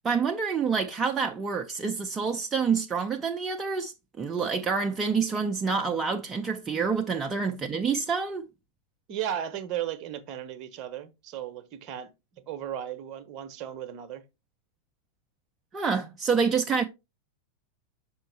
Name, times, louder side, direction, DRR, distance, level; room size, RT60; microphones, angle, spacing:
voice 1, 0.0-8.5 15.7-16.8, right 5 dB, 20° right, 0.5 m, -27 dB
voice 2, 9.1-12.1 12.4-14.2, right 10 dB, 40° right, 0.8 m, -35 dB
6.0 x 5.0 x 3.2 m
figure-of-eight pair, 90°, 0 cm